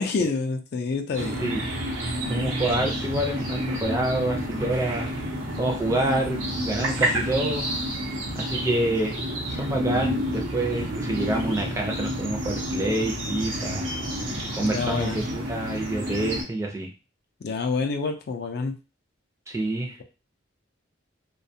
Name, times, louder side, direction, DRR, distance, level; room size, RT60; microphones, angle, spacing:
voice 1, 0.0-1.5 14.6-15.2 17.4-18.7, left 4 dB, 55° left, 5 dB, 0.4 m, -27 dB
sound 1, 1.1-16.4, equal, 85° right, 0.8 m, -29 dB
voice 2, 2.2-5.1 5.6-7.7 8.3-13.9 14.5-16.9 19.5-20.0, right 1 dB, 15° right, 2 dB, 0.4 m, -27 dB
2.4 x 2.2 x 2.7 m, 0.31 s
head